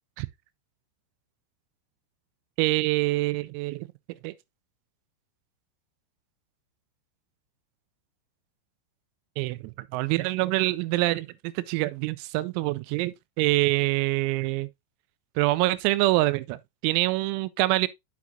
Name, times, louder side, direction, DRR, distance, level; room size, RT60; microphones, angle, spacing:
voice 1, 2.6-3.9 4.2-4.3 9.4-14.7 15.4-17.9, right 19 dB, 90° right, 3.3 m, -25 dB
8.3 x 5.9 x 2.7 m
omnidirectional pair, 6.0 m